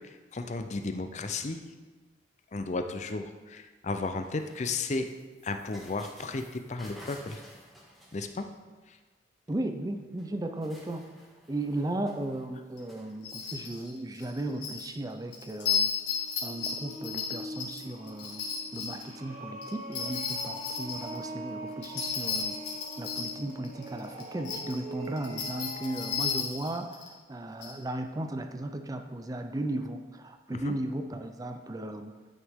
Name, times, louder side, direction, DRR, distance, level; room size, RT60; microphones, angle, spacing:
voice 1, 0.3-1.6 2.5-5.1 5.4-6.4 6.7-7.4 8.1-8.5 30.6-30.7, left 3 dB, 40° left, 7 dB, 0.5 m, -33 dB
sound 1, 4.0-8.8 9.9-10.0 10.2-13.7, equal, ahead, 1.5 m, -54 dB
voice 2, 9.5-11.1 11.5-15.9 16.4-18.4 18.7-22.5 23.0-32.1, right 1 dB, 20° right, 7 dB, 0.4 m, -36 dB
sound 2, 12.8-12.9 13.2-13.9 14.1-14.9 15.3-19.1 19.6-21.2 21.8-24.7 25.1-27.1 27.6-27.7, left 6 dB, 70° left, 1.9 m, -33 dB
sound 3, 15.9-26.3, equal, 35° right, 1.5 m, -43 dB
11.0 x 6.4 x 3.6 m, 1.3 s
head